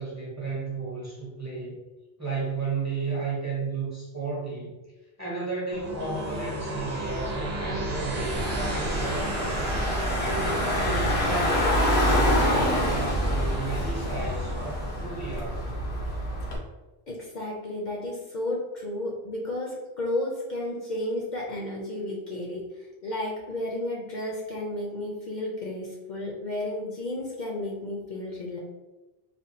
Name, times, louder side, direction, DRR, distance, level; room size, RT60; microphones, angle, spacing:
voice 1, 0.0-1.8 2.2-4.8 5.2-9.7 10.2-15.7, right 3 dB, 20° right, -5 dB, 0.7 m, -33 dB
sound 1, 5.7-15.0, right 2 dB, 85° right, 0.9 m, -34 dB
Car / Engine, 8.4-16.6, equal, 90° left, 1.0 m, -26 dB
voice 2, 17.1-22.6 23.0-28.6, left 1 dB, 55° left, -2 dB, 0.6 m, -32 dB
3.4 x 2.3 x 2.6 m, 1.1 s
omnidirectional pair, 1.0 m